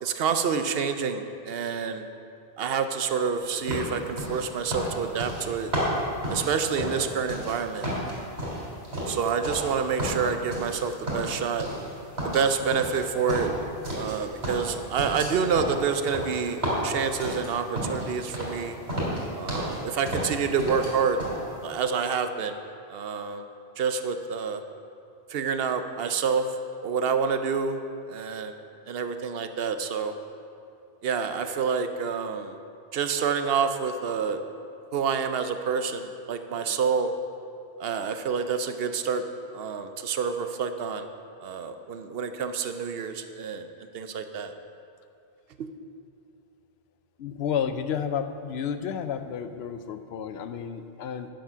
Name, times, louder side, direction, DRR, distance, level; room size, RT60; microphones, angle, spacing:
voice 1, 0.0-2.1 2.6-5.7 6.3-7.9 9.1-11.7 12.2-13.5 13.9-18.8 19.3-21.2 21.6-22.6 22.9-23.5 23.8-24.6 25.3-26.5 26.8-27.8 28.1-28.6 28.9-30.1 31.0-32.6 32.9-34.4 34.9-37.1 37.8-39.2 39.5-41.1 41.4-43.7 43.9-44.5 45.6-45.7, right 6 dB, 70° right, 9 dB, 0.8 m, -28 dB
sound 1, 3.7-7.6 7.8-9.7 10.0-10.8 11.1-11.9 12.2-14.2 14.4-18.1 18.3-18.6 18.9-19.8 20.0-20.9 21.2-21.4, equal, 90° right, 3.2 m, -31 dB
voice 2, 47.2-51.3, left 7 dB, 90° left, 10 dB, 0.8 m, -31 dB
9.0 x 7.3 x 5.7 m, 2.5 s
omnidirectional pair, 1.0 m